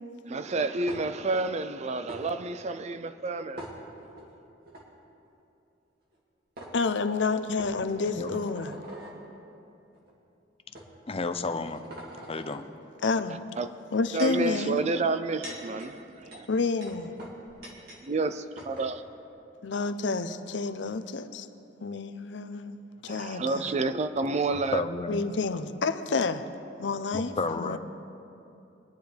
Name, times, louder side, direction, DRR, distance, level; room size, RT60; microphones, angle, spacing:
voice 1, 0.3-3.6 13.6-13.7 14.1-16.5 18.0-19.0 23.1-24.8, right 3 dB, 40° right, 11 dB, 0.5 m, -29 dB
sound 1, 0.9-1.3 2.1-2.2 3.6-4.2 4.7-4.8 6.1-6.2 6.6-6.7 7.6-9.2 10.0-10.1 10.7-10.9 11.4-12.6 13.7-14.5 15.1-18.0 18.3-18.4 18.6-18.9, right 1 dB, 60° right, 2.3 m, -44 dB
voice 2, 6.7-8.8 13.0-13.4 13.9-14.8 16.5-17.1 19.6-21.5 21.8-23.7 25.1-26.4 26.8-27.8, left 4 dB, 75° left, 10 dB, 0.6 m, -29 dB
voice 3, 11.1-11.8 12.3-12.7 24.7-25.3 27.1-27.8, left 3 dB, 30° left, 9 dB, 0.5 m, -31 dB
22.5 x 10.5 x 3.4 m, 2.8 s
head